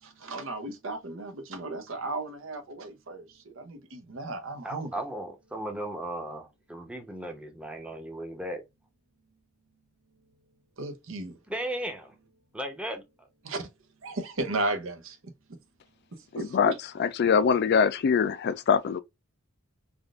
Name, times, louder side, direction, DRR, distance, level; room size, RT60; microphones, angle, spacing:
voice 1, 0.0-4.9 10.8-11.4 13.4-13.7 14.0-15.6 16.1-16.8, right 2 dB, 70° right, 0.8 m, -35 dB
voice 2, 4.6-8.6 11.5-12.1 12.5-13.3, right 1 dB, 5° right, 0.7 m, -36 dB
voice 3, 16.3-19.0, left 6 dB, 55° left, 0.4 m, -24 dB
3.5 x 2.5 x 2.3 m
head